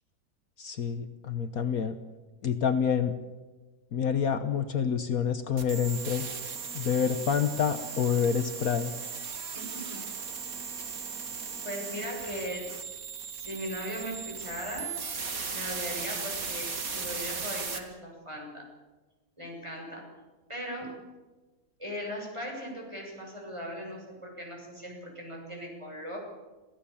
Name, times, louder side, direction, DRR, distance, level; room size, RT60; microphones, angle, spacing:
voice 1, 0.6-2.0 2.4-3.2 3.9-6.3 6.7-8.9, left 7 dB, 65° left, 9 dB, 1.5 m, -27 dB
sound 1, 5.6-17.8, right 5 dB, 60° right, 2.4 m, -37 dB
voice 2, 9.5-10.0 11.6-12.7 13.3-15.0 15.5-18.7 19.4-20.0 20.5-21.0 21.8-26.2, equal, 15° right, 0 dB, 7.1 m, -38 dB
27.5 x 16.5 x 7.2 m, 1.2 s
omnidirectional pair, 1.7 m